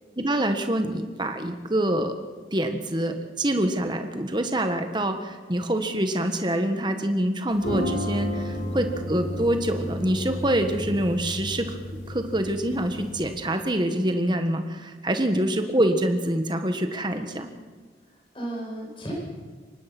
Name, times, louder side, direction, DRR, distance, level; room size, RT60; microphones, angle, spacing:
voice 1, 0.2-2.2 2.5-11.8 12.1-17.5, right 1 dB, 25° right, 6 dB, 1.5 m, -25 dB
sound 1, 7.5-13.5, left 1 dB, 65° left, 4.9 m, -33 dB
voice 2, 8.5-8.8 18.0-19.1, right 1 dB, 30° left, -3 dB, 8.0 m, -36 dB
24.0 x 19.0 x 6.1 m, 1.4 s
head